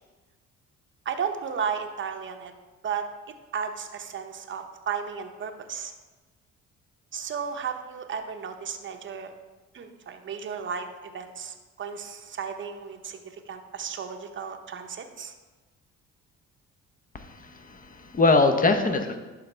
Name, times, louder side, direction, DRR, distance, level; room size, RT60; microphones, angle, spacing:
voice 1, 1.1-2.5 2.8-3.1 3.5-5.9 7.1-9.3 9.7-10.9 11.1-15.3, right 7 dB, 40° right, 6 dB, 0.8 m, -34 dB
voice 2, 17.1-19.2, left 3 dB, 30° left, 7 dB, 0.8 m, -23 dB
11.5 x 3.9 x 3.3 m, 1.2 s
cardioid pair, 90°, 30 cm